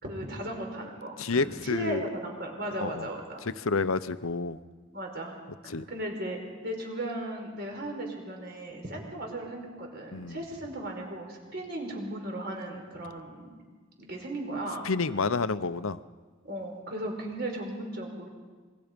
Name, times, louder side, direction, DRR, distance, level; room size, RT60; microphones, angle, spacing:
voice 1, 0.0-3.4 4.9-5.4 5.6-13.5 14.0-14.9 16.4-18.3, right 1 dB, 50° right, 1 dB, 5.0 m, -36 dB
voice 2, 1.2-2.0 2.8-3.1 3.4-4.6 5.7-5.8 10.1-10.4 14.8-16.0, left 4 dB, 80° left, 14 dB, 0.8 m, -29 dB
27.0 x 22.0 x 5.3 m, 1.4 s
head